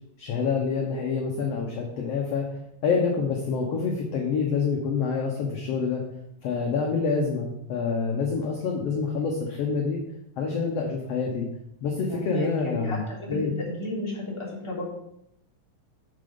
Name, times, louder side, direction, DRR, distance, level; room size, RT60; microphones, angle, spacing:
voice 1, 0.2-2.5 2.8-6.0 6.4-10.0 10.4-11.5 11.8-13.0 13.3-13.5, left 5 dB, 65° left, 1 dB, 1.6 m, -27 dB
voice 2, 12.1-14.9, left 1 dB, 10° left, -5 dB, 2.2 m, -33 dB
8.9 x 6.7 x 3.7 m, 0.79 s
omnidirectional pair, 3.8 m